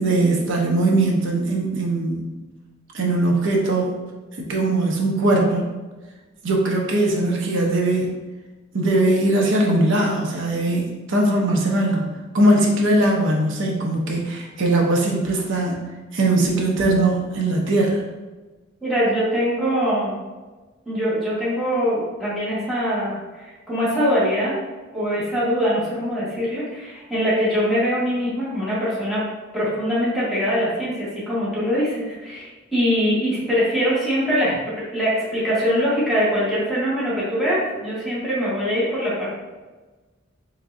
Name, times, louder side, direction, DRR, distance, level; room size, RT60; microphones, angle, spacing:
voice 1, 0.0-2.4 2.9-3.9 4.4-5.7 6.4-8.2 8.7-15.8 16.1-18.0, right 2 dB, 65° right, -1 dB, 0.6 m, -20 dB
voice 2, 18.8-20.2 20.9-24.5 24.9-29.2 29.5-39.4, equal, ahead, -10 dB, 1.1 m, -23 dB
3.5 x 3.1 x 2.4 m, 1.2 s
head